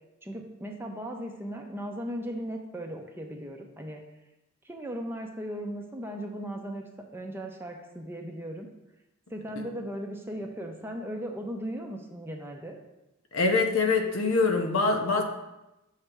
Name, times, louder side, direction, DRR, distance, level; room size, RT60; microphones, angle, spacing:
voice 1, 0.2-4.0 4.6-6.8 7.1-8.7 9.3-12.8, equal, 10° right, 2 dB, 0.6 m, -37 dB
voice 2, 13.3-15.2, left 3 dB, 75° left, 4 dB, 0.8 m, -24 dB
6.4 x 3.3 x 6.0 m, 0.96 s
head